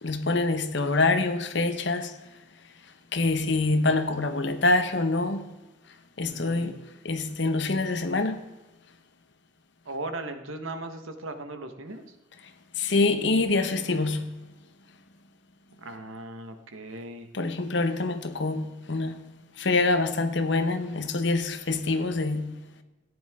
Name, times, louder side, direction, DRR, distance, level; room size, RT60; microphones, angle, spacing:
voice 1, 0.0-2.1 3.1-5.5 6.2-6.8 7.0-8.4 12.8-14.3 17.3-19.2 19.6-22.5, left 3 dB, 65° left, 0.9 m, -25 dB
voice 2, 6.2-6.8 9.8-12.0 15.8-17.3, right 2 dB, 90° right, 1.3 m, -38 dB
14.0 x 9.6 x 3.6 m
head